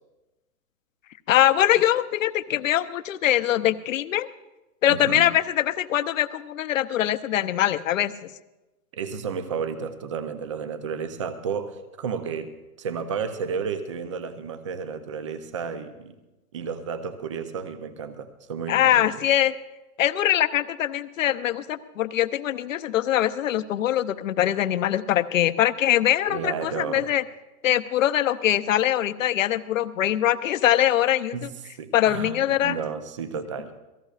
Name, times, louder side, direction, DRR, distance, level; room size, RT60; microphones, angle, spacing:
voice 1, 1.3-4.3 4.8-8.3 18.7-19.5 20.0-27.2 27.6-31.5 31.9-32.8, left 12 dB, 55° left, 13 dB, 0.8 m, -23 dB
voice 2, 4.9-5.3 8.9-16.2 16.5-19.1 26.3-27.1 31.3-31.5 31.8-33.7, right 6 dB, 20° right, 10 dB, 0.5 m, -32 dB
28.5 x 18.0 x 2.5 m, 1.0 s
hypercardioid pair, 155°, 48 cm